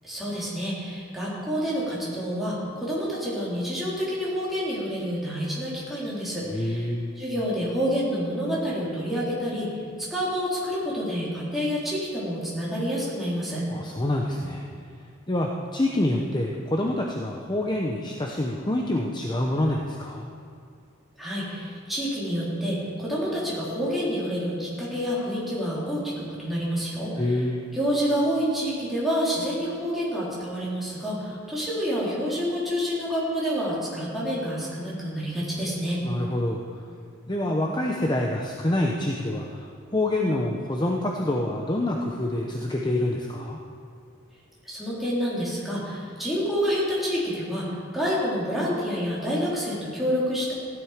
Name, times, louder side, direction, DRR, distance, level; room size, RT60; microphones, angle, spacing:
voice 1, 0.0-6.9 7.2-13.6 21.2-27.2 27.7-36.0 44.6-50.5, equal, ahead, -8 dB, 3.7 m, -28 dB
voice 2, 6.4-7.1 13.7-14.6 15.3-20.3 27.2-27.7 36.0-36.8 37.3-39.7 39.9-43.6, left 1 dB, 20° left, 0 dB, 0.8 m, -26 dB
15.5 x 11.0 x 5.1 m, 2.3 s
head